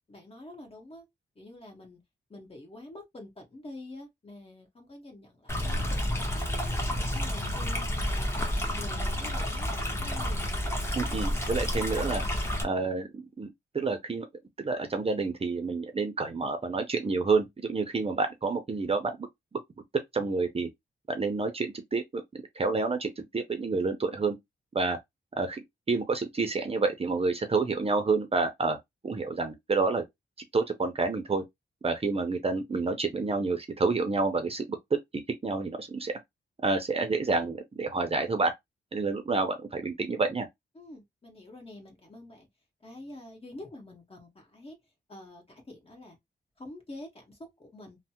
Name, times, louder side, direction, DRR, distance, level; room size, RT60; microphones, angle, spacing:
voice 1, 0.1-1.1 1.3-2.0 2.3-8.4 8.8-10.6 40.7-42.5 42.8-44.8 45.1-46.2 46.6-48.0, left 1 dB, 30° left, 1.4 m, -47 dB
Stream, 5.5-12.6, left 1 dB, 15° left, 0.9 m, -30 dB
voice 2, 11.0-12.2 12.6-14.3 14.6-19.3 20.1-20.7 21.1-22.2 22.6-24.4 24.7-25.0 25.4-25.6 25.9-28.8 29.0-30.0 30.5-31.4 31.8-35.0 35.4-36.1 36.6-38.5 38.9-40.5, right 3 dB, 35° right, 0.6 m, -29 dB
3.2 x 2.1 x 2.8 m
wide cardioid pair, 120°, 18 cm